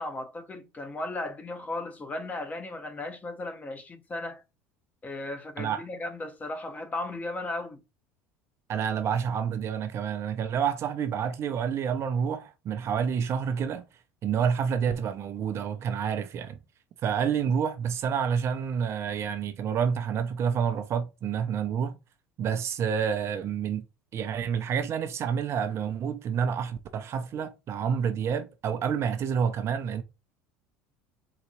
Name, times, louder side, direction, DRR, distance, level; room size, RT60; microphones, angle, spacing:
voice 1, 0.0-4.4 5.0-7.8, left 2 dB, 25° left, 0.8 m, -36 dB
voice 2, 8.7-13.8 14.2-16.6 17.0-21.9 22.4-23.8 24.1-30.0, right 7 dB, 45° right, 0.5 m, -28 dB
3.9 x 2.3 x 3.0 m
supercardioid pair, 85°, 6 cm